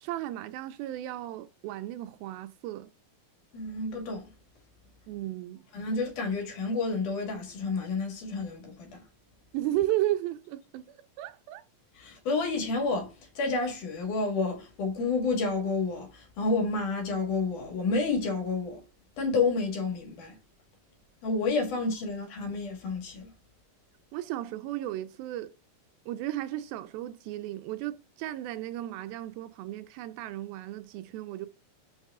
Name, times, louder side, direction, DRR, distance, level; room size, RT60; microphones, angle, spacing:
voice 1, 0.0-2.9 5.1-5.6 9.5-11.6 24.1-25.5 26.1-31.5, right 14 dB, 85° right, 2.4 m, -34 dB
voice 2, 3.5-4.2 5.7-9.0 12.0-13.1 13.4-18.8 19.2-20.4 21.2-23.3, left 3 dB, 60° left, 3.3 m, -30 dB
6.6 x 6.4 x 3.6 m
omnidirectional pair, 4.2 m